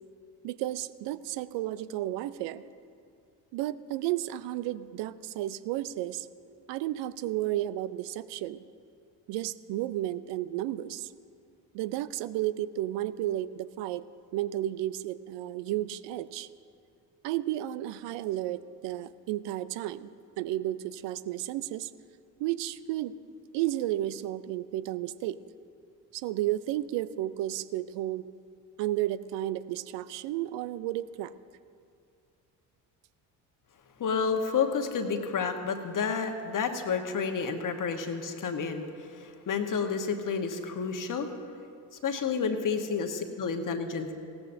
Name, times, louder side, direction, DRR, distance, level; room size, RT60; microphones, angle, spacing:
voice 1, 0.4-2.6 3.5-6.3 6.7-8.6 9.3-11.1 11.7-14.0 14.3-16.5 17.2-21.9 22.4-23.2 23.5-25.4 26.1-28.3 28.8-31.3, right 14 dB, 60° right, 16 dB, 0.6 m, -32 dB
voice 2, 34.0-38.9 39.2-41.3 42.0-44.1, left 5 dB, 40° left, 6 dB, 1.3 m, -30 dB
16.5 x 14.0 x 2.7 m, 2.4 s
hypercardioid pair, 55°, 48 cm